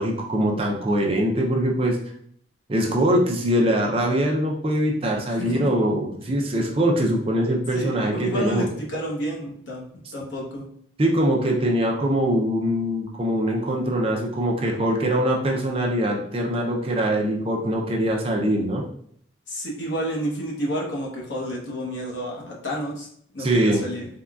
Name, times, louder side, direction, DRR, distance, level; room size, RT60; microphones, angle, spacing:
voice 1, 0.0-2.0 2.7-8.7 11.0-18.8 23.4-23.9, right 1 dB, 30° right, 0 dB, 0.4 m, -22 dB
voice 2, 7.7-9.8 10.1-10.6 19.5-23.1 23.3-24.1, equal, 70° left, -3 dB, 0.8 m, -30 dB
3.6 x 2.2 x 2.3 m, 0.66 s
head